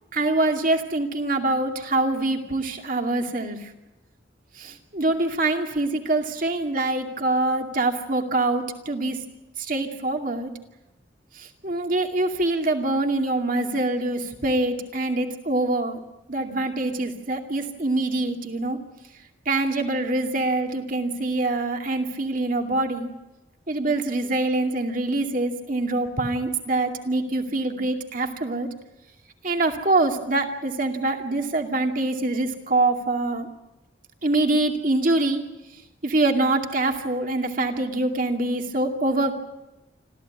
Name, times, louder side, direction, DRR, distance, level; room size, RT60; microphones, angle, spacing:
voice 1, 0.1-3.6 4.6-9.2 9.6-10.5 11.4-16.0 16.3-18.8 19.5-23.1 23.7-28.7 29.4-33.5 34.2-35.4 36.0-39.3, right 2 dB, 45° right, 4 dB, 2.4 m, -24 dB
26.5 x 14.5 x 9.5 m, 1.0 s
head